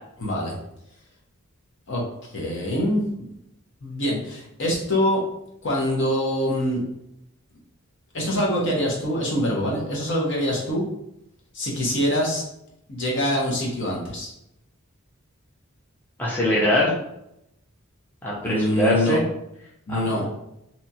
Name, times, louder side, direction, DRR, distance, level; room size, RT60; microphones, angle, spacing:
voice 1, 0.2-0.5 1.9-2.0 2.3-3.3 3.8-5.2 5.6-6.8 8.1-10.8 11.5-12.4 12.9-14.3 18.4-19.2 19.9-20.3, equal, 55° left, -2 dB, 0.8 m, -24 dB
voice 2, 16.2-16.9 18.2-19.2 19.9-20.2, left 1 dB, 10° left, -6 dB, 0.4 m, -22 dB
2.8 x 2.3 x 2.7 m, 0.81 s
head